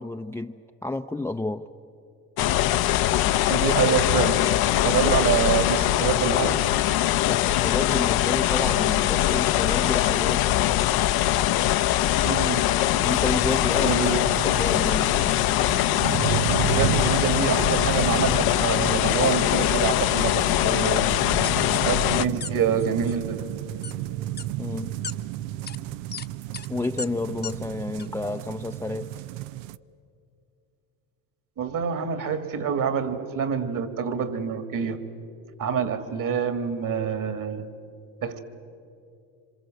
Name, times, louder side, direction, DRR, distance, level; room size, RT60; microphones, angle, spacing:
voice 1, 0.0-1.7 7.3-10.5 13.0-14.0 14.4-15.1 24.6-25.0 26.7-29.1, left 2 dB, 5° left, 0.6 m, -30 dB
sound 1, 2.4-22.2, left 13 dB, 60° left, 0.7 m, -22 dB
voice 2, 3.5-4.5 4.8-6.6 12.2-12.8 13.8-14.2 16.7-21.2 21.8-23.5 31.6-35.0 35.6-37.6 38.2-38.4, right 7 dB, 50° right, 2.3 m, -26 dB
sound 2, 12.9-29.8, right 13 dB, 85° right, 0.6 m, -33 dB
sound 3, 21.4-21.9 22.4-22.5 22.8-23.1 23.8-23.9 24.4-24.5 25.0-25.1 25.7-25.8 26.1-26.3 26.5-26.7 27.0-27.1 27.4-27.5 28.0-28.1, left 5 dB, 25° left, 0.9 m, -35 dB
27.0 x 26.0 x 7.8 m
supercardioid pair, 80°, 41 cm